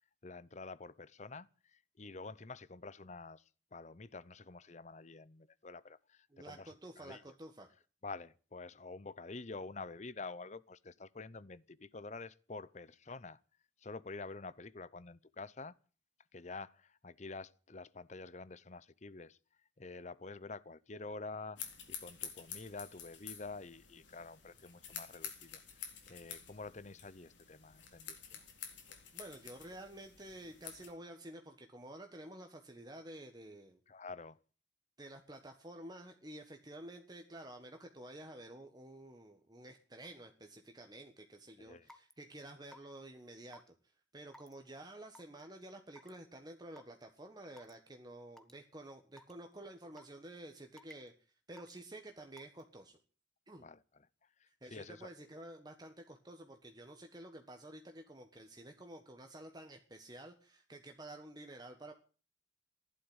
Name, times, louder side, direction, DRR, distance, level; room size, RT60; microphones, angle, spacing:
voice 1, 0.2-3.4 3.7-7.2 8.0-13.4 13.8-15.8 16.3-19.4 19.8-21.6 21.9-28.4 33.9-34.4 41.6-41.9 53.6-53.8 54.4-55.1, left 3 dB, 40° left, 0.8 m, -48 dB
voice 2, 6.3-7.7 29.1-33.8 35.0-43.7 44.1-51.1 51.5-53.0 53.5-53.7 54.6-61.9, right 1 dB, 20° right, 1.4 m, -51 dB
sound 1, 21.6-30.9, left 8 dB, 80° left, 3.8 m, -49 dB
Raindrop / Water tap faucet / Drip, 41.9-42.1 42.7-43.0 43.5-43.7 44.3-44.5 45.1-45.4 46.0-46.2 46.8-46.9 47.6-47.7 48.4-48.5 49.2-49.3 50.0-50.2 50.8-51.1 51.6-51.8 52.4-52.6, left 1 dB, 5° left, 1.1 m, -56 dB
15.5 x 11.5 x 8.1 m
head